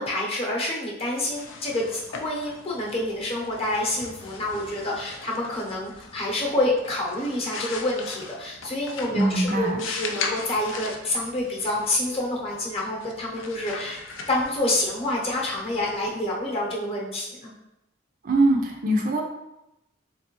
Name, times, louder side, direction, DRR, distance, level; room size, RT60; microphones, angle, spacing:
voice 1, 0.0-14.0 14.3-17.5, left 1 dB, 30° left, -3 dB, 0.8 m, -28 dB
sound 1, 1.1-16.7, left 4 dB, 80° left, 0.5 m, -39 dB
voice 2, 9.1-9.8 18.2-19.2, right 2 dB, 45° right, 1 dB, 0.5 m, -22 dB
3.5 x 3.3 x 3.0 m, 0.90 s
head